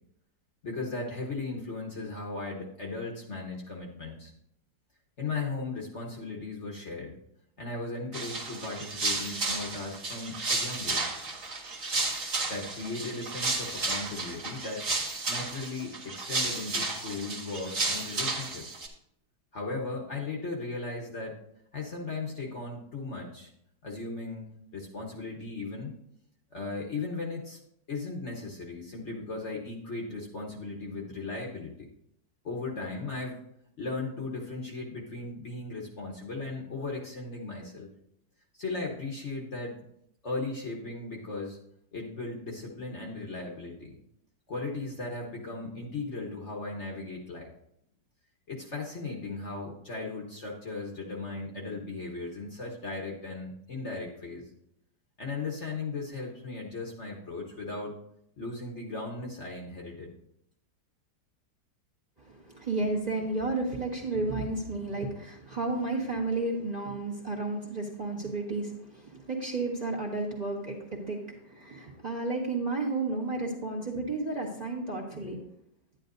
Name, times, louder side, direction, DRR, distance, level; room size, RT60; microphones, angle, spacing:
voice 1, 0.6-4.3 5.2-7.2 7.6-11.2 12.5-18.8 19.5-21.4 21.7-23.5 23.8-26.0 26.5-27.6 27.9-31.9 32.4-33.4 33.8-37.9 38.5-39.8 40.2-41.6 41.9-44.0 44.5-47.5 48.5-54.5 55.2-57.9 58.4-60.1, left 3 dB, 45° left, 0 dB, 1.4 m, -37 dB
sound 1, 8.1-18.9, right 3 dB, 50° right, 1.9 m, -32 dB
voice 2, 62.2-75.4, right 3 dB, 25° right, -1 dB, 1.4 m, -32 dB
10.5 x 10.5 x 2.6 m, 0.74 s
omnidirectional pair, 1.9 m